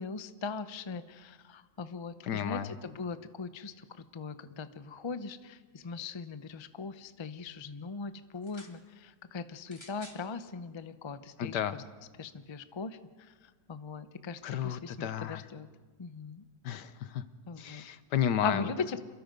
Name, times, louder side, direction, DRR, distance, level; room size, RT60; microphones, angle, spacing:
voice 1, 0.0-11.6 12.2-15.7 16.0-16.5 17.5-17.8 18.4-19.0, left 4 dB, 35° left, 11 dB, 0.4 m, -40 dB
voice 2, 2.2-2.7 11.4-11.8 14.4-15.4 16.6-17.2 17.6-18.6, left 9 dB, 85° left, 13 dB, 1.6 m, -32 dB
sound 1, 8.3-8.8 9.7-10.3 11.1-11.2, left 1 dB, 15° left, 2.0 m, -52 dB
27.5 x 22.0 x 5.3 m, 1.4 s
omnidirectional pair, 1.8 m